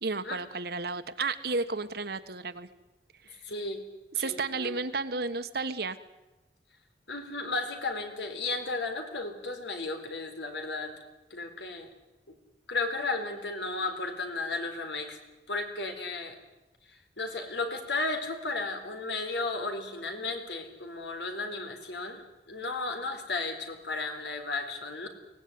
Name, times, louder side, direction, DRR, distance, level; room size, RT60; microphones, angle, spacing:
voice 1, 0.0-2.7 3.3-3.4 4.2-6.0, right 3 dB, 60° right, 10 dB, 1.4 m, -32 dB
voice 2, 3.4-3.8 4.1-4.7 7.1-10.9 11.3-11.9 12.3-12.4 12.7-15.2 15.5-16.4 16.9-25.1, left 3 dB, 80° left, 6 dB, 3.9 m, -34 dB
24.0 x 18.0 x 9.6 m, 1.0 s
head